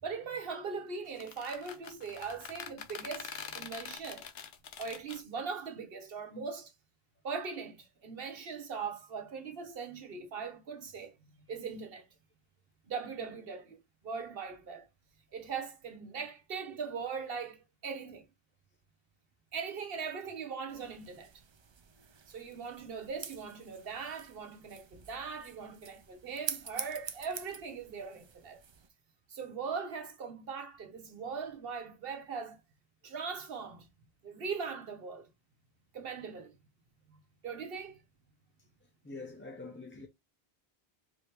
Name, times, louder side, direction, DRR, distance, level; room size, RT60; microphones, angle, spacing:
voice 1, 0.0-4.2 4.8-6.7 7.2-12.1 12.8-13.8 14.0-14.9 15.3-18.3 19.5-21.3 22.3-28.6 29.3-32.6 33.0-33.9 34.2-35.3 35.9-36.6 37.1-38.0, right 5 dB, 70° right, 1.2 m, -40 dB
sound 1, 1.1-5.2, left 7 dB, 80° left, 0.9 m, -45 dB
sound 2, 20.7-28.9, right 6 dB, 45° right, 0.3 m, -46 dB
voice 2, 39.0-40.1, left 3 dB, 15° left, 0.4 m, -45 dB
4.9 x 2.7 x 2.9 m
omnidirectional pair, 1.0 m